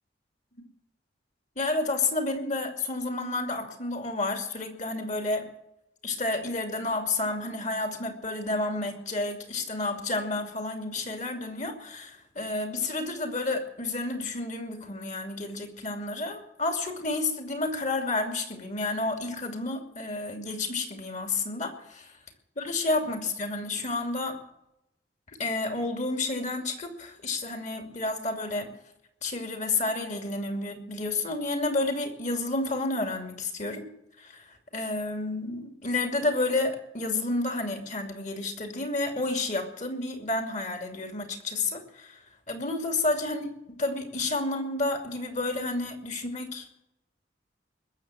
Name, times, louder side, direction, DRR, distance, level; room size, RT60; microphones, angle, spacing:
voice 1, 1.6-5.5 6.0-22.0 22.6-24.4 25.4-28.7 29.2-33.9 34.2-43.5 43.8-46.7, left 2 dB, 40° left, 4 dB, 2.7 m, -30 dB
21.0 x 7.3 x 9.0 m, 0.85 s
head